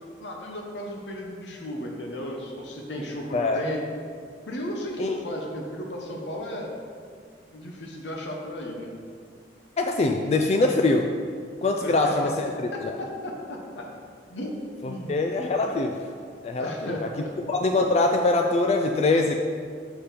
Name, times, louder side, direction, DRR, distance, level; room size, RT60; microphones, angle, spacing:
voice 1, 0.2-3.8 4.5-6.7 7.5-8.9 11.8-12.1 12.7-13.9 14.3-14.5 14.8-15.1 16.6-17.3, equal, 85° left, 0 dB, 1.0 m, -34 dB
voice 2, 9.8-11.1 11.6-13.0 14.8-16.0 16.4-17.1 17.5-19.4, left 2 dB, 35° left, 3 dB, 0.3 m, -23 dB
7.0 x 5.1 x 4.4 m, 2.1 s
head